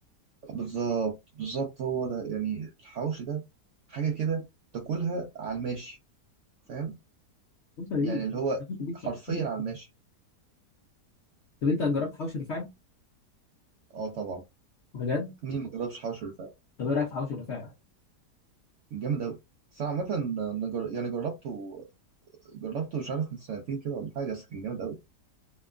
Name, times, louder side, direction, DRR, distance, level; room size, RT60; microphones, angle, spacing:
voice 1, 0.4-3.4 3.9-4.4 4.7-6.0 6.7-7.0 8.0-8.6 9.0-9.9 13.9-14.4 15.4-16.5 18.9-19.4 19.7-21.8 22.4-25.0, right 6 dB, 70° right, 0.7 m, -32 dB
voice 2, 7.8-8.2 8.7-9.0 9.3-9.4 11.6-12.7 14.9-15.3 16.8-17.7, left 4 dB, 70° left, 0.6 m, -29 dB
2.8 x 2.2 x 2.2 m
omnidirectional pair, 1.8 m